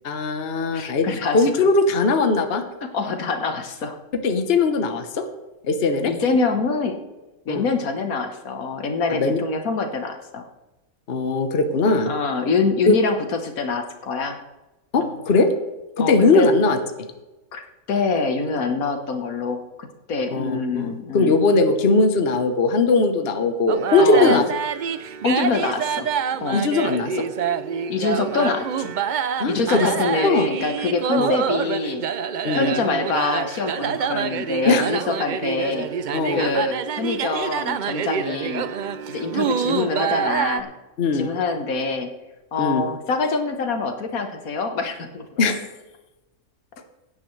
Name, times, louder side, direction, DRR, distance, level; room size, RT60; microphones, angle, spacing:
voice 1, 0.0-1.1 1.3-2.6 4.2-5.2 5.6-6.1 7.5-7.6 9.1-9.4 11.1-12.1 12.9-13.0 14.9-15.5 16.0-16.8 20.3-24.4 26.5-27.2 29.4-29.9 30.2-30.5 31.2-31.3 32.4-32.7 34.7-34.8 36.1-36.4 41.0-41.3 42.6-42.8 45.4-45.6, left 3 dB, 45° left, 7 dB, 1.2 m, -19 dB
voice 2, 0.7-1.5 2.8-4.0 6.0-7.0 7.4-10.5 12.1-14.4 15.0-15.2 16.0-16.5 17.5-17.6 17.9-21.4 24.0-24.5 25.2-26.1 26.4-26.6 27.9-28.9 29.5-32.0 32.5-35.9 36.3-38.7 39.1-40.7 41.1-42.1 42.5-45.2, left 4 dB, 80° left, 6 dB, 1.6 m, -25 dB
sound 1, 23.7-40.6, right 7 dB, 80° right, 0.4 m, -26 dB
17.0 x 9.8 x 3.2 m, 1.1 s
omnidirectional pair, 1.5 m